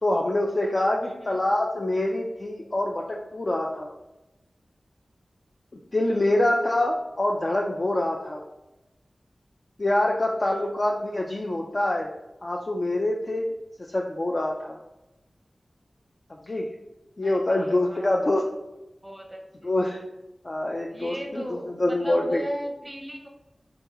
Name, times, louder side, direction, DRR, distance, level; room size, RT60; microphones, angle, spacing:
voice 1, 0.0-3.9 5.9-8.4 9.8-12.1 12.4-13.5 13.8-14.8 16.5-16.7 17.2-18.4 19.6-20.0 20.4-22.4, left 1 dB, 40° left, 0 dB, 0.4 m, -25 dB
voice 2, 1.0-1.4 6.0-6.2 10.4-10.6 17.2-18.5 19.0-19.7 20.9-23.3, equal, 15° right, 1 dB, 0.8 m, -38 dB
3.8 x 2.8 x 3.5 m, 0.97 s
wide cardioid pair, 90°, 0 cm